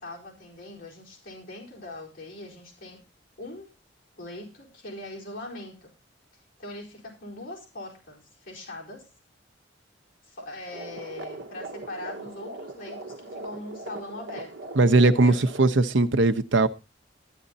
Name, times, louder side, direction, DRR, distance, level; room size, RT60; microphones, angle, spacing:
voice 1, 0.0-3.0 3.4-3.7 4.2-5.9 6.6-9.1 10.2-15.4, left 2 dB, 50° left, 4.6 m, -41 dB
sound 1, 10.7-15.7, right 2 dB, 70° right, 1.2 m, -40 dB
voice 2, 14.8-16.7, right 3 dB, 90° right, 0.9 m, -19 dB
13.0 x 10.0 x 4.0 m
head